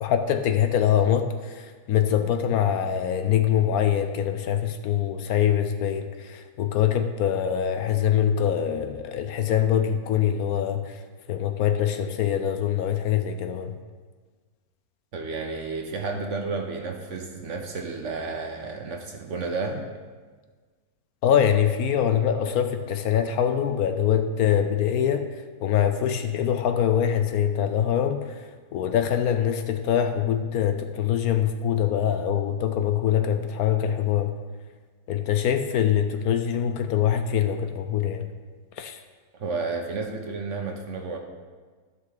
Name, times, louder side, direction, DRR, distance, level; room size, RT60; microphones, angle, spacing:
voice 1, 0.0-11.0 11.3-13.8 21.2-25.3 25.6-34.3 35.1-38.3 38.8-39.0, left 9 dB, 75° left, 8 dB, 1.0 m, -24 dB
voice 2, 15.1-19.9 39.3-41.2, right 4 dB, 55° right, 3 dB, 1.1 m, -31 dB
13.0 x 5.6 x 3.9 m, 1.4 s
omnidirectional pair, 1.7 m